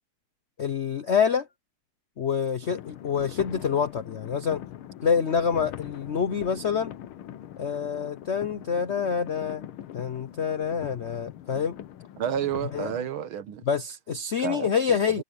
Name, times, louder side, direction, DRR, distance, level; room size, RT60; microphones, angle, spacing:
voice 1, 0.6-1.5 2.2-4.6 5.0-6.9 7.6-9.6 9.9-11.8 12.7-12.9 13.6-15.2, left 7 dB, 70° left, 0.6 m, -26 dB
sound 1, 2.6-13.1, left 11 dB, 85° left, 1.8 m, -42 dB
voice 2, 12.2-13.6 14.4-15.2, right 9 dB, 80° right, 1.9 m, -31 dB
omnidirectional pair, 2.3 m